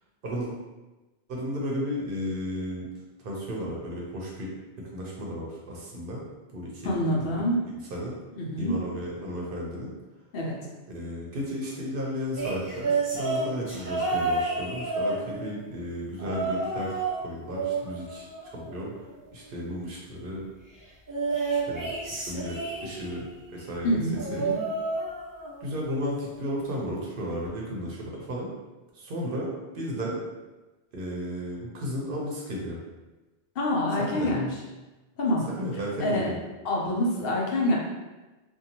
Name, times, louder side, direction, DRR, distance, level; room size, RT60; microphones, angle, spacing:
voice 1, 1.3-2.9 3.2-4.5 4.8-6.2 6.5-8.1 8.6-9.9 10.9-17.0 17.2-18.3 18.5-18.9 19.3-20.5 21.5-24.0 24.3-24.4 25.6-28.5 28.9-30.2 30.9-32.8 34.0-34.3 35.5-36.4, equal, 60° right, -3 dB, 0.8 m, -34 dB
voice 2, 6.8-7.6 8.4-8.8 10.3-10.6 23.8-24.6 33.6-34.5 35.2-35.5 36.0-36.3 36.6-37.8, left 1 dB, 65° left, -2 dB, 0.8 m, -26 dB
sound 1, 12.3-15.6 16.2-17.2 17.5-19.0 21.1-23.2 24.1-25.6 25.9-26.3 27.4-27.5, right 3 dB, 30° right, 0.3 m, -30 dB
2.6 x 2.2 x 2.8 m, 1.1 s
omnidirectional pair, 1.1 m